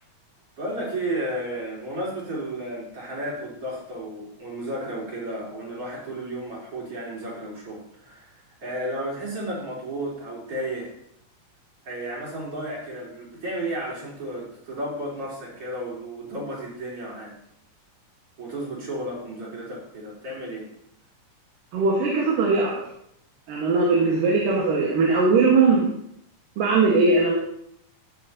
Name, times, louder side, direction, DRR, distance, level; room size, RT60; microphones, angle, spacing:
voice 1, 0.6-10.9 11.8-17.3 18.4-20.7, right 1 dB, 45° right, -5 dB, 4.3 m, -33 dB
voice 2, 21.7-22.8 23.5-25.9 26.6-27.4, right 4 dB, 85° right, -3 dB, 3.1 m, -20 dB
16.0 x 6.7 x 2.8 m, 0.72 s
omnidirectional pair, 3.8 m